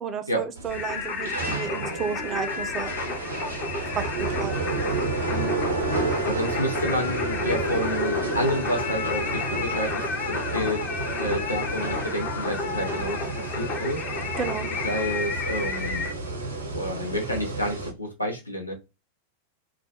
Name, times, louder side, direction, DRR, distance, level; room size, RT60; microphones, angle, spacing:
voice 1, 0.0-2.9 3.9-4.6 14.4-14.7, right 6 dB, 25° right, 0.4 m, -32 dB
sound 1, 0.6-17.9, right 2 dB, 75° right, 0.6 m, -31 dB
Singing, 0.7-16.1, left 5 dB, 35° left, 0.6 m, -32 dB
voice 2, 5.3-5.7 6.0-14.3 14.8-16.0 16.7-18.7, equal, 85° left, 0.7 m, -30 dB
2.4 x 2.0 x 2.7 m
figure-of-eight pair, 90°, 0 cm